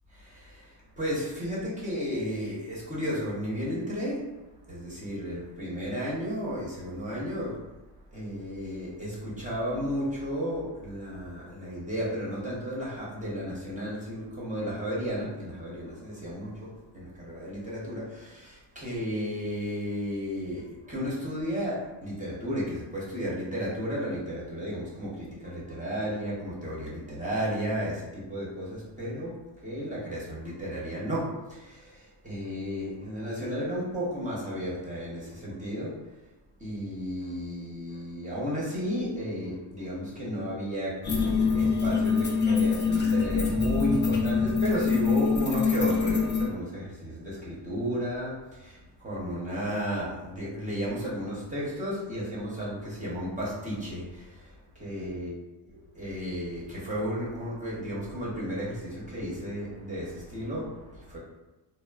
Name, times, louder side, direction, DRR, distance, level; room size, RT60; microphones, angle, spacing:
voice 1, 0.2-4.4 4.7-7.7 8.1-36.1 36.6-41.1 41.5-55.3 55.9-61.2, equal, 15° right, -7 dB, 0.8 m, -33 dB
sound 1, 41.0-46.5, left 5 dB, 25° left, 0.5 m, -25 dB
2.9 x 2.1 x 2.3 m, 1.1 s
cardioid pair, 125°, 44 cm